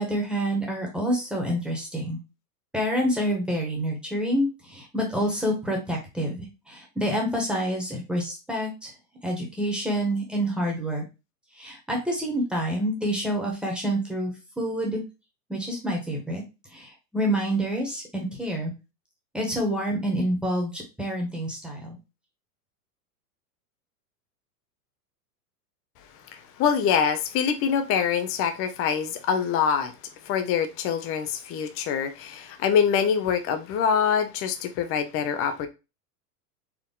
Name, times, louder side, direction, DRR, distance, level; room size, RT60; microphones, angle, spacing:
voice 1, 0.0-2.2 2.7-8.9 9.2-11.0 11.5-14.3 14.6-15.0 15.5-16.4 16.7-18.7 19.3-22.0, equal, ahead, 1.4 m, -27 dB
voice 2, 26.3-29.9 30.2-35.7, left 7 dB, 30° left, 0.7 m, -25 dB
4.6 x 2.9 x 3.6 m
hypercardioid pair, 130°, 47 cm